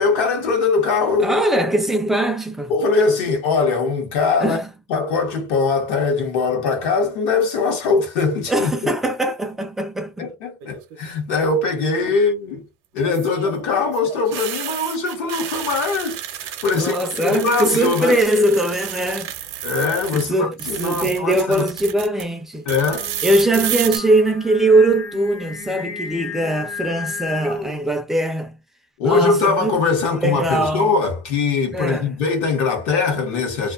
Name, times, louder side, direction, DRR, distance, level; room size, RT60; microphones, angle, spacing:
voice 1, 0.0-1.4 2.7-4.6 4.9-8.7 10.2-12.6 12.9-17.0 17.2-18.2 19.6-21.7 22.7-23.1 29.0-33.7, left 4 dB, 70° left, 0.8 m, -21 dB
voice 2, 1.2-2.7 4.4-4.6 8.5-10.3 16.7-19.3 20.1-22.7 23.2-28.6 29.0-29.7 30.2-30.9 31.7-32.1, right 1 dB, 5° right, 0.3 m, -21 dB
sound 1, 10.6-11.1 13.0-20.2 20.5-22.2 22.7-24.0, right 11 dB, 60° right, 0.5 m, -31 dB
Singing, 22.8-27.9, left 4 dB, 30° left, 0.6 m, -33 dB
2.5 x 2.2 x 2.3 m
cardioid pair, 175°, 7 cm